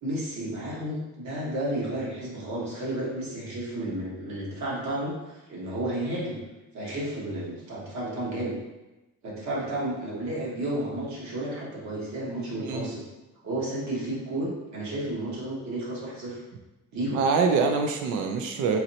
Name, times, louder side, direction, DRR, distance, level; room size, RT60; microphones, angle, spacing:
voice 1, 0.0-6.4 6.7-8.6 9.2-13.0 13.4-16.4 16.9-17.2, right 1 dB, 65° right, -5 dB, 1.4 m, -32 dB
voice 2, 12.5-12.9 17.1-18.8, right 5 dB, 85° right, 4 dB, 0.5 m, -25 dB
3.9 x 3.1 x 2.8 m, 1.0 s
cardioid pair, 90°, 30 cm